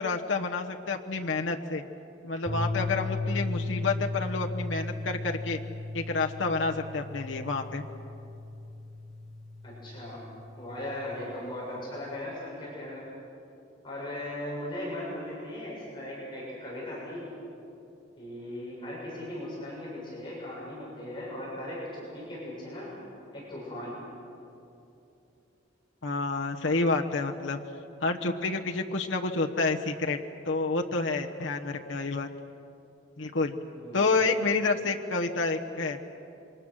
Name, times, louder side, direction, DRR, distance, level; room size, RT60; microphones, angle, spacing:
voice 1, 0.0-1.8 2.2-5.6 5.9-7.8 26.0-27.6 28.0-30.2 30.5-32.3 33.2-33.5 33.9-36.0, left 3 dB, 75° left, 2 dB, 1.2 m, -29 dB
sound 1, 2.5-10.9, left 2 dB, ahead, 6.4 m, -35 dB
voice 2, 9.6-10.2 10.6-13.0 13.8-17.3 18.2-22.9 23.3-24.0 33.7-34.0, left 1 dB, 25° left, -6 dB, 7.1 m, -38 dB
28.0 x 24.5 x 6.5 m, 2.7 s
head